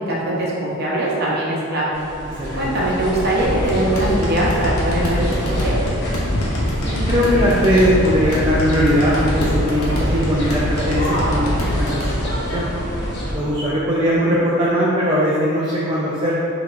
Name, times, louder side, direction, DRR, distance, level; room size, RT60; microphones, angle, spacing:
voice 1, 0.1-1.9 2.6-5.8, right 1 dB, 45° right, -5 dB, 0.8 m, -21 dB
sound 1, 1.9-13.3, equal, 50° left, 0.8 m, -26 dB
voice 2, 2.4-2.7 6.8-12.7 13.3-16.3, equal, 20° right, -7 dB, 0.4 m, -20 dB
sound 2, 3.4-12.1, equal, 85° left, 0.9 m, -24 dB
5.8 x 2.9 x 2.5 m, 2.7 s
head